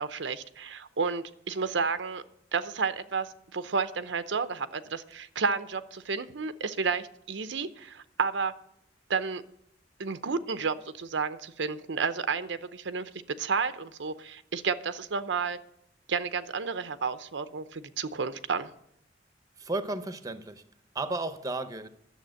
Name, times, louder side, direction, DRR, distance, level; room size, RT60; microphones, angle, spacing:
voice 1, 0.0-2.2 2.5-8.5 9.1-9.4 10.0-13.0 13.4-15.6 16.1-18.7, right 5 dB, 90° right, 11 dB, 0.7 m, -31 dB
voice 2, 19.6-20.6 20.9-21.9, right 2 dB, 20° right, 10 dB, 0.7 m, -33 dB
11.0 x 7.2 x 7.6 m, 0.74 s
head